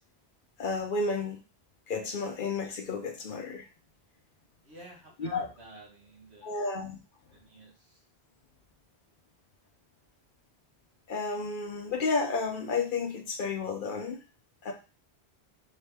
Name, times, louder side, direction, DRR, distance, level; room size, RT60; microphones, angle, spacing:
voice 1, 0.6-1.4 1.9-3.7 5.2-5.5 6.4-7.0 11.1-14.2 14.6-14.7, left 4 dB, 60° left, 4 dB, 0.7 m, -32 dB
voice 2, 4.6-6.6 7.3-8.0, right 1 dB, 85° right, -1 dB, 1.5 m, -50 dB
4.0 x 2.1 x 3.3 m, 0.32 s
omnidirectional pair, 1.1 m